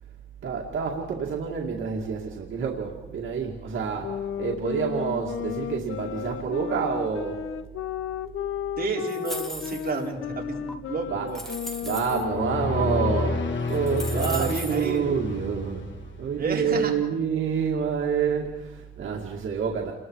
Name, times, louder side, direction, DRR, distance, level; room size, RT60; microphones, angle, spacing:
voice 1, 0.4-7.5 11.1-11.4 11.8-15.9 16.2-19.9, right 6 dB, 75° right, -1 dB, 2.3 m, -28 dB
sound 1, 4.0-13.7, left 9 dB, 85° left, 1.0 m, -34 dB
voice 2, 8.8-11.4 14.1-15.1 16.4-16.9, right 4 dB, 45° right, -1 dB, 4.2 m, -30 dB
sound 2, 9.1-10.0 10.7-10.8 11.3-12.2 13.2-13.3 13.7-14.9, equal, ahead, 2.4 m, -38 dB
sound 3, 12.1-16.4, left 3 dB, 65° left, 2.4 m, -30 dB
29.5 x 21.5 x 4.8 m, 1.2 s
wide cardioid pair, 135°, 20 cm